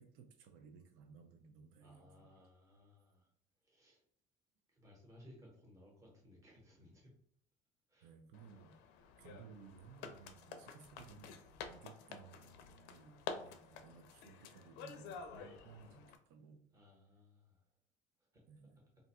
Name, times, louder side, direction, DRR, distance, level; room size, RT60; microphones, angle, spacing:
voice 1, 0.0-2.3 8.0-8.7 9.2-11.4 11.6-16.6 18.5-18.8, right 6 dB, 85° right, 6 dB, 0.5 m, -58 dB
voice 2, 1.8-3.3 3.6-4.0 4.7-7.1 7.9-8.1 15.3-16.0 16.7-17.7 18.2-18.4, left 1 dB, 15° right, -2 dB, 1.0 m, -62 dB
sound 1, 8.3-16.2, left 6 dB, 70° left, 0.4 m, -50 dB
2.6 x 2.3 x 4.1 m, 0.62 s
cardioid pair, 175°, 18 cm